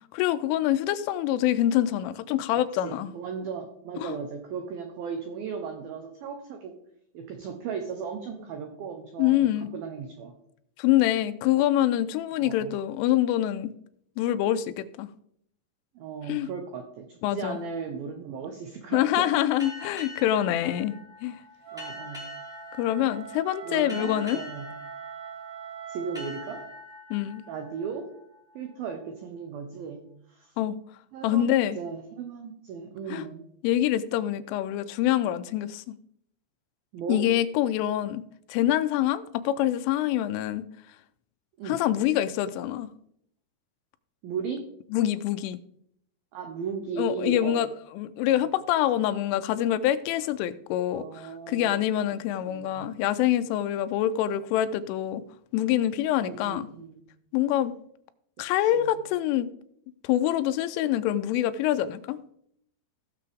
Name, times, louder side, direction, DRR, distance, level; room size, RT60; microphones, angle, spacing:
voice 1, 0.1-3.1 4.0-4.2 9.2-9.7 10.8-13.7 14.2-15.1 16.3-16.5 17.2-17.6 18.9-21.4 22.8-24.4 27.1-27.5 30.6-30.8 31.2-31.8 33.1-33.3 33.6-35.8 37.1-38.2 38.5-40.7 41.7-42.9 44.9-45.6 47.0-47.7 47.9-55.2 55.5-56.7 57.3-57.8 58.4-59.5 60.0-62.2, left 12 dB, 90° left, 12 dB, 3.2 m, -25 dB
voice 2, 2.8-6.7 7.1-10.3 12.4-12.8 16.0-19.3 21.7-22.3 23.6-24.7 25.9-26.7 27.5-28.1 28.6-30.0 30.3-30.5 31.1-33.4 36.9-37.2 41.6-41.8 44.2-44.7 46.3-47.6 50.9-51.9 52.5-53.0 56.2-57.0 58.7-58.9, right 6 dB, 85° right, 4 dB, 2.1 m, -36 dB
sound 1, 19.6-28.9, left 2 dB, ahead, 2.6 m, -45 dB
Wind instrument woodwind instrument, 21.6-26.6, right 8 dB, 60° right, 3.1 m, -42 dB
17.5 x 6.7 x 3.5 m, 0.70 s
omnidirectional pair, 5.5 m